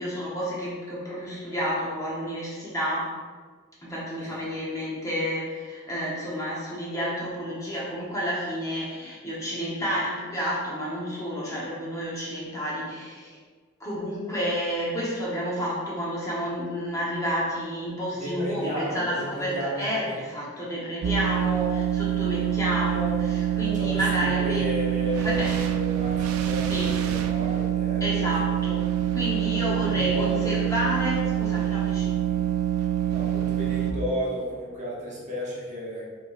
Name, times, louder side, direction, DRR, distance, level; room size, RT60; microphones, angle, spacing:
voice 1, 0.0-3.1 3.8-13.4 13.8-24.7 25.2-25.6 26.7-27.0 28.0-28.8 29.1-32.2, equal, 15° left, -7 dB, 0.8 m, -30 dB
voice 2, 18.2-20.1 23.6-28.5 29.7-30.5 32.8-36.1, equal, 35° right, -6 dB, 1.0 m, -33 dB
sound 1, 21.0-33.9, right 11 dB, 70° right, 0.4 m, -26 dB
5.6 x 3.1 x 2.4 m, 1.5 s
head